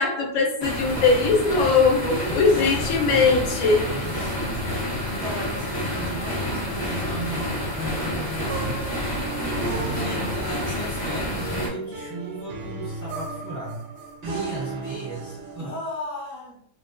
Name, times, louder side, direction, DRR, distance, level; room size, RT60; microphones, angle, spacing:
voice 1, 0.0-3.9 9.3-10.0, left 4 dB, 75° left, 1 dB, 0.9 m, -21 dB
sound 1, 0.6-11.7, left 1 dB, 40° left, 0.3 m, -29 dB
voice 2, 2.3-3.5 3.8-8.8 9.9-13.8 14.2-16.6, right 1 dB, 20° right, -7 dB, 0.5 m, -35 dB
sound 2, 7.7-15.7, right 3 dB, 65° right, 0.6 m, -35 dB
2.6 x 2.2 x 2.3 m, 0.70 s
omnidirectional pair, 1.4 m